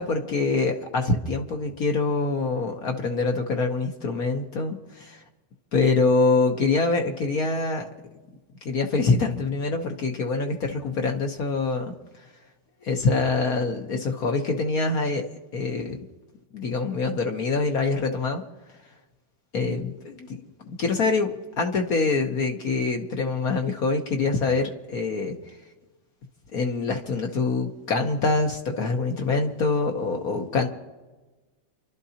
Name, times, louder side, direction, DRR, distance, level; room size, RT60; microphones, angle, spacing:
voice 1, 0.0-5.2 5.7-7.9 8.6-11.9 12.8-15.3 15.5-16.0 16.5-18.4 19.5-20.5 20.8-21.3 21.6-25.3 26.5-30.7, left 3 dB, 55° left, 3 dB, 1.4 m, -25 dB
29.5 x 12.5 x 2.9 m, 1.2 s
omnidirectional pair, 2.0 m